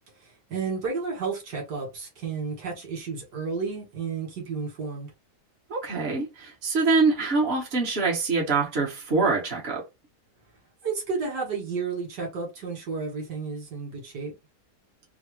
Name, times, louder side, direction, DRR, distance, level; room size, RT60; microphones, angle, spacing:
voice 1, 0.2-5.1 10.8-14.3, right 5 dB, 80° right, 2.1 m, -32 dB
voice 2, 5.7-9.8, right 3 dB, 40° right, 1.4 m, -24 dB
3.9 x 2.1 x 3.1 m
omnidirectional pair, 1.8 m